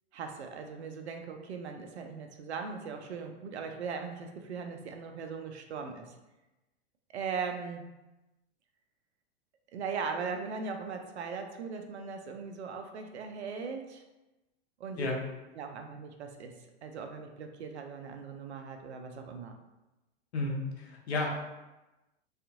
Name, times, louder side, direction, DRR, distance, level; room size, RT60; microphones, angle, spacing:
voice 1, 0.1-6.1 7.1-7.9 9.7-14.0 14.8-15.1 15.6-16.5 16.8-19.5, right 5 dB, 80° right, 4 dB, 0.5 m, -39 dB
voice 2, 20.3-21.3, left 2 dB, 75° left, -1 dB, 0.8 m, -32 dB
2.6 x 2.5 x 2.4 m, 1.0 s
hypercardioid pair, 100°, 32 cm